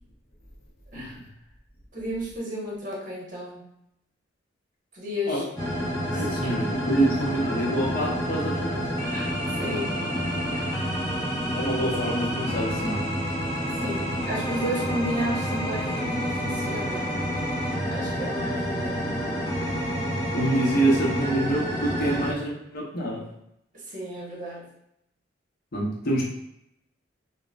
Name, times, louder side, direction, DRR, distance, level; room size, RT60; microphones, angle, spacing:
voice 1, 1.9-3.7 4.9-5.4 6.1-6.2 9.1-10.0 10.5-10.8 13.8-17.1 17.9-19.0 23.7-24.6, equal, 45° right, -5 dB, 1.3 m, -33 dB
sound 1, 5.6-22.3, equal, 20° left, 0.8 m, -28 dB
voice 2, 6.1-8.9 11.2-13.1 20.3-23.3 25.7-26.2, right 1 dB, 55° left, -3 dB, 0.8 m, -26 dB
5.1 x 2.2 x 2.4 m, 0.78 s
head